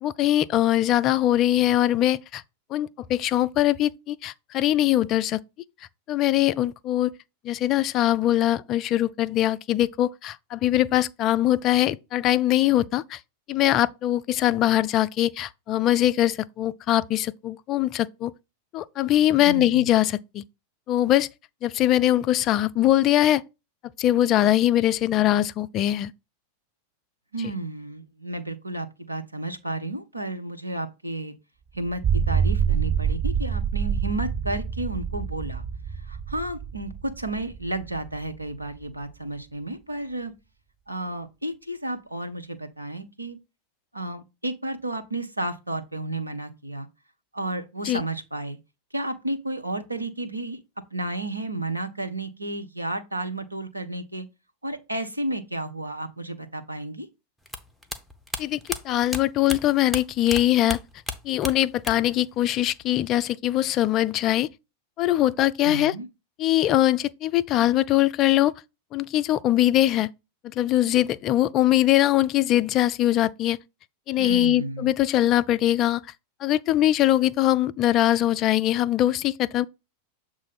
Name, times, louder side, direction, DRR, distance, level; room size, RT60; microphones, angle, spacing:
voice 1, 0.0-2.4 2.7-5.4 6.1-7.1 7.4-13.2 13.5-18.3 18.7-20.4 20.9-21.3 21.6-23.4 24.0-26.1 27.4-27.5 47.8-48.0 58.4-58.6 58.8-60.8 61.2-64.5 65.0-65.9 66.4-68.5 68.9-70.1 70.6-73.6 74.1-76.0 76.4-79.6, left 13 dB, 35° left, 0.3 m, -22 dB
voice 2, 19.4-19.9 27.3-31.3 31.7-35.6 36.0-40.3 40.9-43.4 43.9-46.9 47.3-48.6 48.9-50.6 50.9-54.3 54.6-57.1 65.6-66.1 74.2-74.9, right 1 dB, 85° right, 0.7 m, -32 dB
sound 1, 31.9-38.4, right 7 dB, 35° right, 1.1 m, -26 dB
sound 2, 57.5-60.4 60.7-62.2 62.4-63.2, left 1 dB, ahead, 0.8 m, -33 dB
7.3 x 2.5 x 5.6 m
figure-of-eight pair, 90°, 0 cm